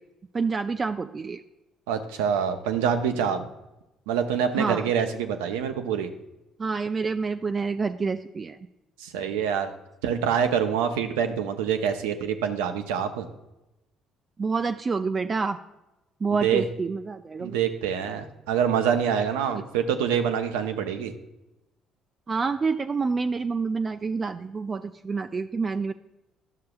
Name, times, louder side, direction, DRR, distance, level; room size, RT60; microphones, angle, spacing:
voice 1, 0.3-1.4 4.5-4.8 6.6-8.6 14.4-15.6 16.2-17.6 22.3-25.9, right 4 dB, 35° right, 7 dB, 0.4 m, -28 dB
voice 2, 1.9-3.5 4.1-6.1 9.0-9.7 10.0-13.3 16.4-16.7 17.4-21.1, right 8 dB, 85° right, 7 dB, 0.6 m, -26 dB
10.5 x 6.5 x 2.3 m, 0.95 s
hypercardioid pair, 60°, 0 cm